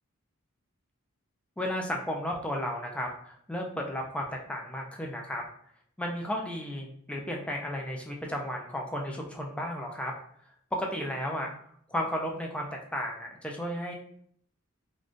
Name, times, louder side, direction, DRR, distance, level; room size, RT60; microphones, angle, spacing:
voice 1, 1.6-5.4 6.0-10.1 10.7-11.5 11.9-13.9, equal, 5° left, 0 dB, 0.4 m, -33 dB
3.5 x 2.4 x 2.5 m, 0.65 s
head